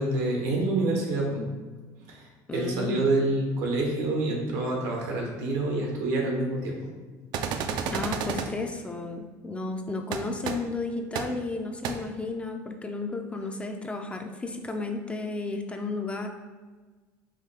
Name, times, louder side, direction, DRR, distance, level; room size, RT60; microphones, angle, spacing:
voice 1, 0.0-1.4 2.0-6.9, right 2 dB, 85° right, 0 dB, 1.2 m, -27 dB
voice 2, 2.5-3.1 7.9-16.3, left 3 dB, 15° left, 4 dB, 0.4 m, -33 dB
sound 1, 7.3-8.5 10.1-10.2 10.4-10.5 11.1-11.2 11.8-11.9, right 7 dB, 60° right, 0.4 m, -30 dB
4.9 x 2.7 x 3.3 m, 1.3 s
cardioid pair, 120°, 8 cm